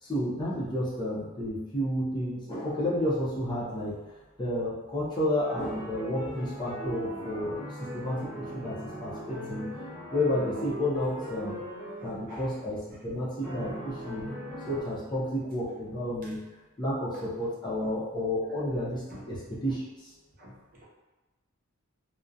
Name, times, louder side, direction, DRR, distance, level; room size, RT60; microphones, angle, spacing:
voice 1, 0.0-4.0 4.4-7.6 7.9-9.7 10.1-11.6 12.0-14.3 14.7-16.4 16.8-20.1, left 1 dB, 20° left, -8 dB, 0.5 m, -31 dB
sound 1, 5.4-12.1 13.4-14.8, equal, 5° right, 1.0 m, -38 dB
voice 2, 12.0-12.6 19.1-19.2 20.4-20.8, equal, 40° right, -7 dB, 0.7 m, -49 dB
2.3 x 2.0 x 2.5 m, 1.1 s
head